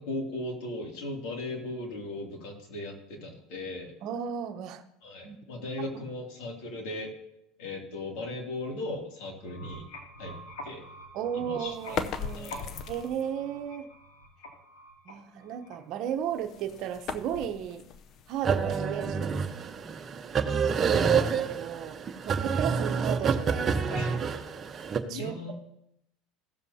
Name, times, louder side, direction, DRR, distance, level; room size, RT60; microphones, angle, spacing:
voice 1, 0.0-3.9 5.0-7.1 7.6-9.9 10.2-10.4 10.6-10.8 11.4-12.0 12.3-12.7 23.9-24.2 25.1-25.5, left 2 dB, 70° left, 0 dB, 2.7 m, -37 dB
voice 2, 4.0-4.8 5.2-5.4 5.9-6.0 11.1-12.6 12.9-13.9 15.0-17.9 18.3-19.3 20.6-24.1 24.7-25.5, right 9 dB, 55° right, 8 dB, 0.8 m, -35 dB
sound 1, 9.3-16.1, equal, 85° left, 2.5 m, -46 dB
sound 2, 11.7-13.4 16.1-19.0, left 6 dB, 45° left, 0.6 m, -38 dB
sound 3, 18.4-25.0, right 6 dB, 30° right, 0.9 m, -27 dB
16.0 x 7.0 x 2.8 m, 0.82 s
supercardioid pair, 105°, 0 cm